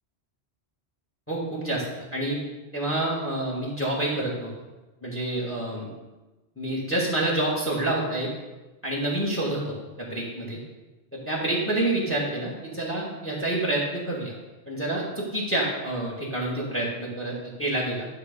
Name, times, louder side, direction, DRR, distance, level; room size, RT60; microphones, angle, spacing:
voice 1, 1.3-2.4 2.7-4.5 5.0-5.9 6.6-8.3 8.8-10.6 11.1-14.4 14.7-18.1, right 1 dB, 10° left, -2 dB, 1.8 m, -28 dB
11.0 x 3.8 x 6.7 m, 1.1 s
omnidirectional pair, 1.1 m